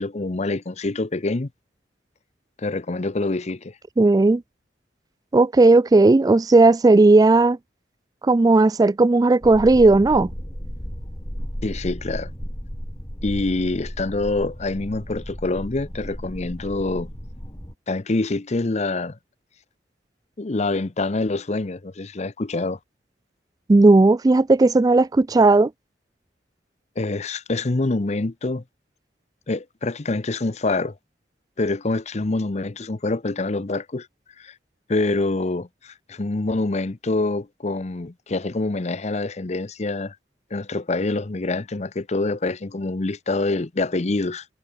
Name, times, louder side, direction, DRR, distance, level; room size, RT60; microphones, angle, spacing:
voice 1, 0.0-1.5 2.6-3.7 11.6-12.3 13.2-17.1 17.9-19.2 20.4-22.8 27.0-28.6 29.5-30.9 31.6-34.1 34.4-34.5 34.9-40.2 40.5-44.4, left 2 dB, 40° left, 0.7 m, -26 dB
voice 2, 4.0-4.4 5.3-7.6 8.2-10.3 23.7-25.7, right 2 dB, 20° right, 0.3 m, -15 dB
sound 1, 9.4-17.7, equal, 25° left, 4.5 m, -34 dB
head